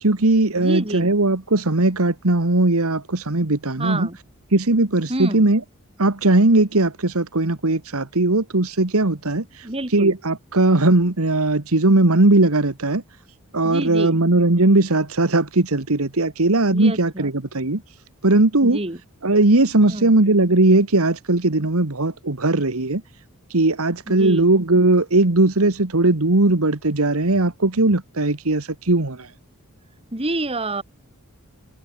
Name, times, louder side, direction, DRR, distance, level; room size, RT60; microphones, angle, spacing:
voice 1, 0.0-4.1 4.5-5.6 6.0-9.7 9.9-13.0 13.5-17.8 18.2-18.8 19.2-23.0 23.5-29.3, right 2 dB, 75° right, 1.7 m, -18 dB
voice 2, 0.6-1.1 3.8-4.2 5.1-5.5 9.6-10.2 13.6-14.2 16.7-17.3 18.6-19.0 19.8-20.1 24.1-24.5 30.1-30.8, right 2 dB, 25° right, 2.2 m, -28 dB
head